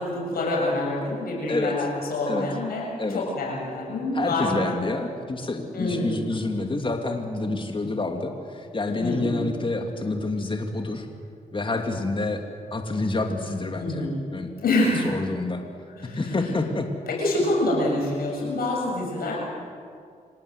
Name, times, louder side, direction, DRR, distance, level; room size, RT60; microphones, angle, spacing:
voice 1, 0.0-2.9 3.1-4.8 5.7-6.1 9.0-9.3 13.8-14.2 14.6-15.1 16.0-16.4 17.2-19.4, left 2 dB, 75° left, -2 dB, 7.6 m, -26 dB
voice 2, 1.5-1.9 2.3-2.5 3.0-3.2 4.1-11.1 11.5-12.4 12.7-14.5 15.0-15.6 16.1-16.9, left 2 dB, 35° left, 4 dB, 2.6 m, -28 dB
26.0 x 18.0 x 8.1 m, 2.3 s
supercardioid pair, 50°, 16 cm